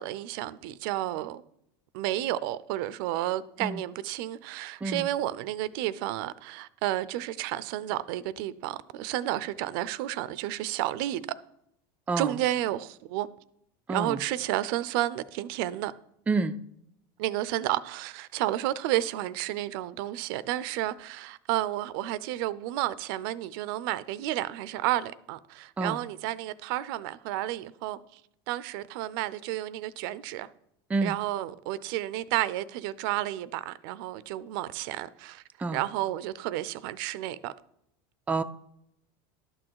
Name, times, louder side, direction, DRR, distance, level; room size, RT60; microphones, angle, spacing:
voice 1, 0.0-1.4 1.9-11.2 12.2-13.3 13.9-15.9 17.2-28.2 28.5-30.5 31.0-35.4 35.7-37.5, right 14 dB, 70° right, 0.5 m, -31 dB
voice 2, 3.6-3.8 4.8-5.1 12.1-12.4 13.9-14.2 16.3-16.6 25.8-26.0 30.9-31.2 35.6-35.8 38.3-38.4, right 3 dB, 10° right, 0.4 m, -28 dB
11.5 x 6.3 x 4.6 m
supercardioid pair, 120°, 12 cm